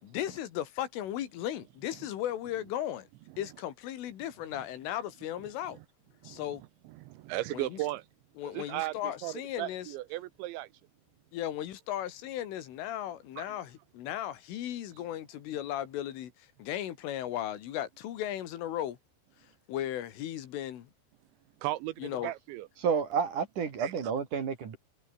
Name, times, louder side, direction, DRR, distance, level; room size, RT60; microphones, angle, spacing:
voice 1, 0.0-3.1 3.4-5.8 6.2-6.6 7.5-7.8 8.4-9.9 11.3-19.0 19.7-20.9 22.0-22.3, left 12 dB, 85° left, 4.7 m, -36 dB
voice 2, 7.0-8.0 8.5-10.7 13.4-13.5 21.6-22.7 23.8-24.1, right 16 dB, 80° right, 3.0 m, -36 dB
voice 3, 22.8-24.8, right 6 dB, 45° right, 3.7 m, -30 dB
omnidirectional pair, 5.5 m